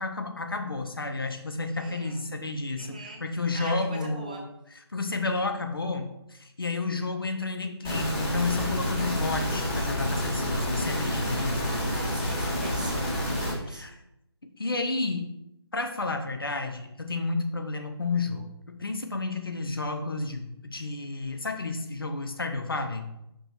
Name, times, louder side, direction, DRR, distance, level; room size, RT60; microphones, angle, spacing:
voice 1, 0.0-4.5 4.9-11.7 13.7-14.0 14.6-15.3 15.7-23.1, left 3 dB, 55° left, 6 dB, 1.0 m, -31 dB
voice 2, 1.7-2.2 2.8-3.2 3.5-4.4 11.2-13.1 13.4-14.0, right 2 dB, 15° right, 2 dB, 0.5 m, -43 dB
sound 1, 7.8-13.5, equal, 10° left, 1.3 m, -29 dB
5.6 x 5.5 x 4.2 m, 0.83 s
figure-of-eight pair, 155°, 14 cm